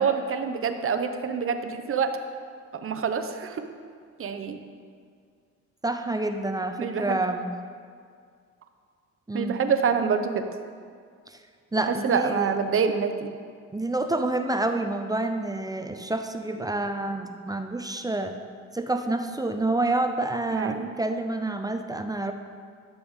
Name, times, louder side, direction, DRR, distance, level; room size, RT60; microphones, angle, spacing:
voice 1, 0.0-2.2 2.7-3.7 4.2-4.6 6.8-7.2 9.3-10.4 11.8-13.3 20.5-20.9, right 6 dB, 45° right, 8 dB, 0.8 m, -26 dB
voice 2, 5.8-7.5 9.3-9.6 11.3-11.4 11.7-12.5 13.7-18.4 18.7-22.3, right 2 dB, 10° right, 6 dB, 0.5 m, -28 dB
12.5 x 6.8 x 3.6 m, 2.1 s
cardioid pair, 90°, 30 cm